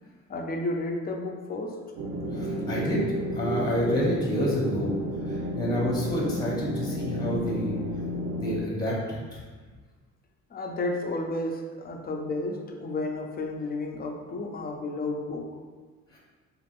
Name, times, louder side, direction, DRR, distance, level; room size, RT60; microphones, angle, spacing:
voice 1, 0.3-1.8 10.5-15.5, left 2 dB, 30° left, 2 dB, 0.4 m, -32 dB
sound 1, 2.0-8.6, equal, 60° right, 0.7 m, -31 dB
voice 2, 2.3-3.0 3.3-4.9 5.5-7.7 8.3-9.4 16.1-16.2, left 1 dB, 15° left, -4 dB, 0.8 m, -28 dB
3.4 x 2.4 x 2.4 m, 1.4 s
cardioid pair, 90°, 30 cm